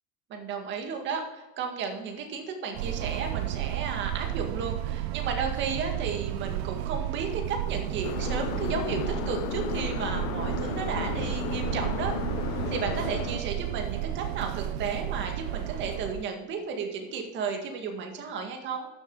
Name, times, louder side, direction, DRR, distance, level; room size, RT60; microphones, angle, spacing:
voice 1, 0.3-12.2 12.7-18.9, right 5 dB, 40° right, 3 dB, 1.9 m, -33 dB
sound 1, 2.7-16.2, right 13 dB, 90° right, 0.7 m, -32 dB
sound 2, 8.0-13.4, left 12 dB, 60° left, 0.8 m, -34 dB
12.5 x 7.3 x 3.9 m, 1.1 s
supercardioid pair, 150°, 30 cm